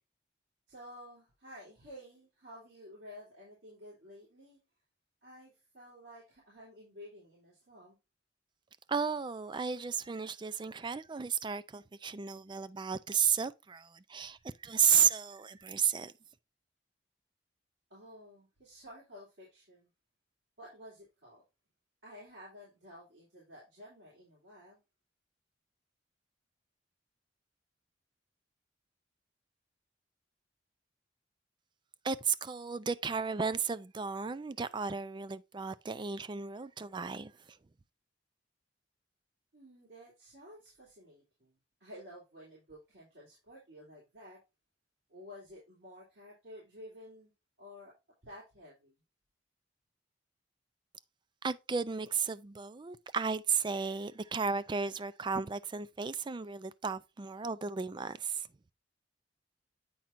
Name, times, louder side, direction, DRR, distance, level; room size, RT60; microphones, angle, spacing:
voice 1, 0.7-4.6 5.2-8.0 17.9-19.9 20.6-21.4 22.0-24.8 39.5-41.5 41.8-44.4 45.1-47.3 47.6-47.9 48.2-48.9, equal, 70° right, 3.1 m, -52 dB
voice 2, 8.9-16.1 32.0-37.3 51.4-58.5, right 6 dB, 25° right, 0.4 m, -33 dB
8.6 x 5.9 x 2.6 m
head